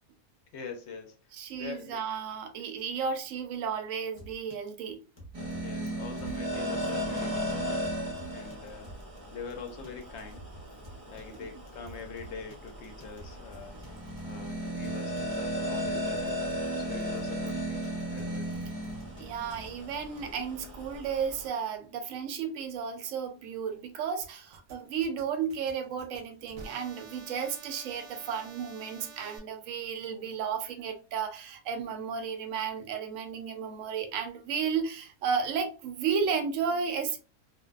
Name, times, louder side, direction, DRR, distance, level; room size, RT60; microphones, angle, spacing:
voice 1, 0.5-1.2 1.5-2.2 5.6-7.9 8.2-8.9 9.3-10.5 11.1-13.8 14.2-16.4 16.8-18.5, left 5 dB, 65° left, 0.7 m, -44 dB
voice 2, 1.3-5.0 19.2-37.2, right 6 dB, 65° right, 0.9 m, -33 dB
sound 1, 4.2-4.7 5.2-5.9 6.2-6.4 6.9-7.2 7.5-7.6 7.8-9.2 9.5-16.2 16.5-16.7 17.0-19.2 19.5-19.7 20.2-20.3, right 1 dB, 30° left, 0.5 m, -51 dB
sound 2, 5.3-21.5, equal, 35° right, 0.5 m, -36 dB
sound 3, 24.2-29.4, right 4 dB, 85° right, 0.4 m, -50 dB
2.5 x 2.2 x 2.3 m
omnidirectional pair, 1.6 m